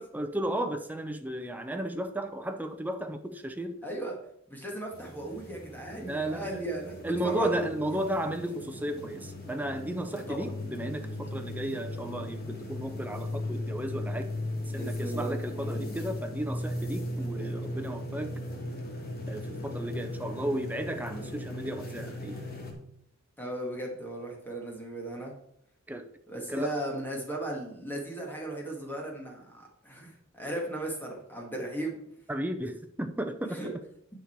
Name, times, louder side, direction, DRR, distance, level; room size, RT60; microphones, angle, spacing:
voice 1, 0.1-3.8 6.1-6.6 7.0-14.2 14.7-18.3 19.3-22.4 25.9-26.1 26.5-26.7 32.3-33.6, right 1 dB, 10° right, 6 dB, 0.5 m, -34 dB
voice 2, 3.8-4.2 4.5-7.7 10.3-10.5 14.7-15.4 23.4-25.3 26.3-32.0 33.4-33.7, right 1 dB, 10° left, 0 dB, 1.9 m, -36 dB
sound 1, 4.9-22.7, left 1 dB, 45° left, 2.1 m, -37 dB
9.6 x 6.6 x 4.6 m, 0.72 s
head